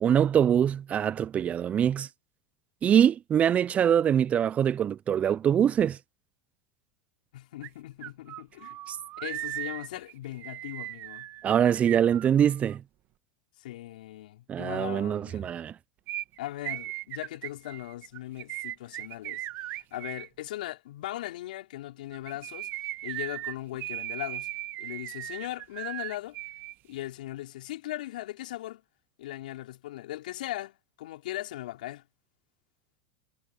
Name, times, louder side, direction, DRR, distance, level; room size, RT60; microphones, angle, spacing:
voice 1, 0.0-2.1 2.8-6.0 8.9-9.0 11.4-12.8 14.5-15.7, right 9 dB, 30° right, 0.4 m, -24 dB
voice 2, 7.3-8.8 9.2-11.3 13.6-15.5 16.4-24.5 24.8-26.4 26.9-28.8 29.2-32.0, left 15 dB, 75° left, 4.5 m, -39 dB
sound 1, 7.6-7.7 8.0-12.8 16.1-20.3 22.1-26.7 27.0-27.1, right 16 dB, 50° right, 1.9 m, -38 dB
hypercardioid pair, 100°, 5 cm